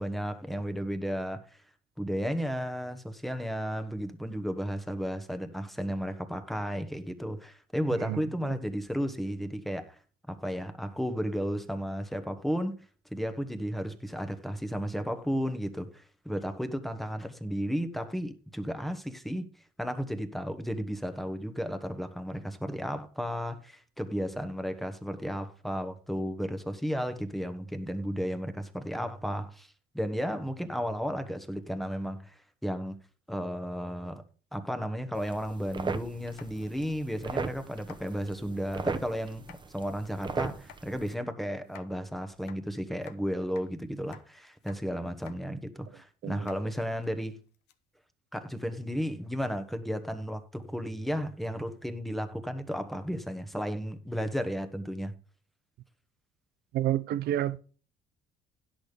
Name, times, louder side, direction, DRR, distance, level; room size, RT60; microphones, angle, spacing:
voice 1, 0.0-1.6 2.0-10.0 10.3-12.8 13.1-19.5 19.8-33.0 33.3-34.2 34.5-39.5 39.7-47.4 48.3-55.2, equal, ahead, 1.1 m, -33 dB
sound 1, 35.1-41.1, right 4 dB, 25° right, 0.9 m, -38 dB
sound 2, 36.3-36.8 37.3-37.4 37.8-38.0 39.3-39.6 40.5-40.8 41.6-41.9 42.4-43.2 43.5-43.7 43.9-44.3 44.5-44.8 45.1-45.4 45.8-45.9 46.4-47.7, left 10 dB, 75° left, 1.0 m, -53 dB
voice 2, 46.2-46.5 56.7-57.6, right 12 dB, 70° right, 0.7 m, -29 dB
10.5 x 6.3 x 5.1 m
cardioid pair, 110°, 17 cm